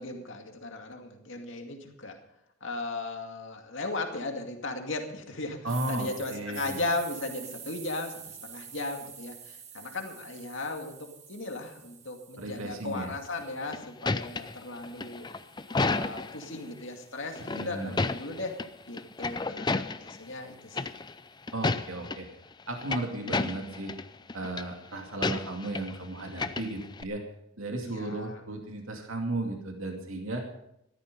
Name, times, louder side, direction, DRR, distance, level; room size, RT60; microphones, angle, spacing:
voice 1, 0.0-2.2 2.6-15.3 15.7-18.6 18.9-20.9 27.8-28.4, left 2 dB, 60° left, 3 dB, 2.4 m, -37 dB
voice 2, 5.6-6.8 12.4-13.1 17.4-17.9 21.5-22.3 22.7-23.9 24.3-27.2 27.6-30.4, right 2 dB, 75° right, 2 dB, 2.4 m, -35 dB
sound 1, 5.7-13.7 14.2-18.4, right 8 dB, 35° right, 1.5 m, -49 dB
sound 2, 13.4-16.5 17.3-18.7 19.0-20.2 20.7-21.2 21.5-22.2 22.6-24.0 24.3-24.6 25.2-26.0 26.2-27.0, left 3 dB, 20° left, 0.5 m, -31 dB
14.5 x 13.0 x 5.4 m, 0.79 s
head